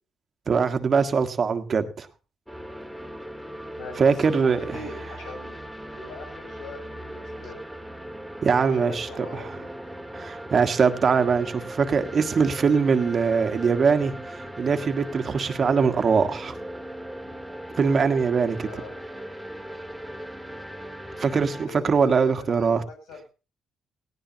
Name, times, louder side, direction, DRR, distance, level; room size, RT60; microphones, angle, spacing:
voice 1, 0.5-2.1 4.0-4.8 8.4-9.5 10.1-16.5 17.8-18.7 21.2-22.8, right 5 dB, 45° right, 8 dB, 1.5 m, -22 dB
sound 1, 2.5-21.7, right 1 dB, ahead, 1.9 m, -38 dB
voice 2, 3.8-5.5 5.9-7.7 8.6-9.7 18.6-18.9 21.5-23.2, left 3 dB, 90° left, 3 dB, 7.5 m, -41 dB
18.0 x 17.0 x 2.9 m, 0.32 s
cardioid pair, 90°, 0 cm